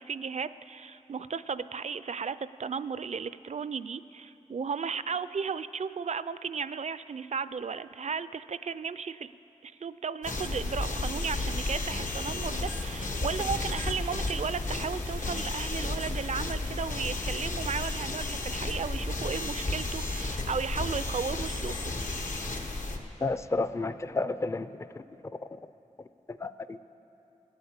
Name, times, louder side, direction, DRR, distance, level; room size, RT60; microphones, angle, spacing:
voice 1, 0.0-9.3 9.6-21.9, right 5 dB, 60° right, 15 dB, 0.4 m, -35 dB
sound 1, 10.2-23.0, left 2 dB, 85° left, 1.2 m, -33 dB
voice 2, 23.2-24.9 26.3-26.8, left 3 dB, 20° left, 13 dB, 0.4 m, -31 dB
17.5 x 8.1 x 8.6 m, 2.9 s
wide cardioid pair, 70°, 13 cm